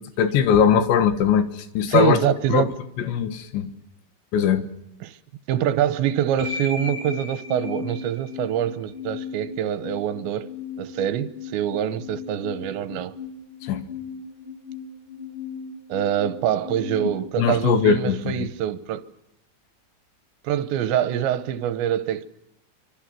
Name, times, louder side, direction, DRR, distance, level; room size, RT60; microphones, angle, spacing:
voice 1, 0.0-2.2 2.5-2.7 3.0-3.7 4.3-4.7 13.6-13.8 17.4-18.5, left 7 dB, 80° left, 3.8 m, -20 dB
voice 2, 1.9-2.7 5.0-5.2 5.5-10.5 10.8-13.1 15.9-19.0 20.5-22.2, right 10 dB, 80° right, 3.3 m, -25 dB
sound 1, 6.4-18.4, left 5 dB, 10° left, 3.9 m, -36 dB
25.5 x 25.0 x 7.6 m
omnidirectional pair, 5.1 m